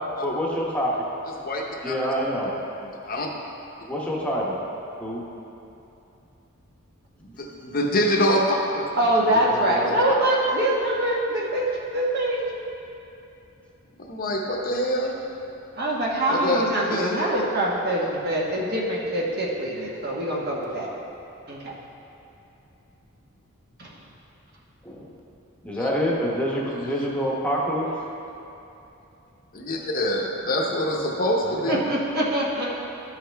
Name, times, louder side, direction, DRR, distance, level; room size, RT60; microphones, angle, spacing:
voice 1, 0.2-1.0 1.8-2.5 3.9-4.6 5.0-5.2 9.3-9.9 18.5-18.6 24.8-25.1 25.6-27.9 31.4-31.8, equal, 5° left, -4 dB, 1.0 m, -27 dB
voice 2, 1.4-1.9 3.0-3.3 7.2-8.9 14.1-15.1 16.3-16.6 16.9-17.2 25.8-25.9 29.5-31.8, equal, 40° left, -1 dB, 0.8 m, -25 dB
voice 3, 9.0-12.5 15.8-20.9 21.5-21.7 23.8-23.9 31.7-32.7, right 1 dB, 45° right, -4 dB, 1.3 m, -24 dB
13.0 x 5.6 x 3.4 m, 2.9 s
head